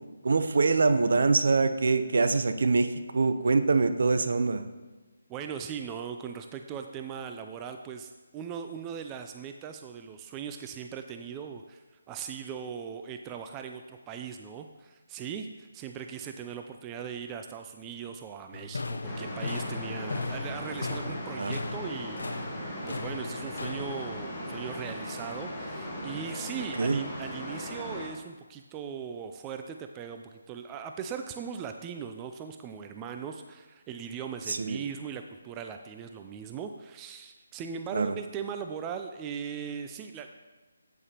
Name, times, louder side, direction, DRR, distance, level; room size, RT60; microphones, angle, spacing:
voice 1, 0.2-4.6 21.4-21.6 26.8-27.0 34.5-34.8 37.9-38.1, right 4 dB, 65° right, 10 dB, 0.6 m, -24 dB
voice 2, 5.3-22.2 22.9-40.3, right 7 dB, 15° right, 6 dB, 0.3 m, -39 dB
sound 1, 18.5-24.2, left 3 dB, 80° left, 0.6 m, -37 dB
sound 2, 19.0-28.1, equal, 15° left, 1.6 m, -38 dB
8.7 x 8.4 x 2.9 m, 1.3 s
figure-of-eight pair, 160°, 0 cm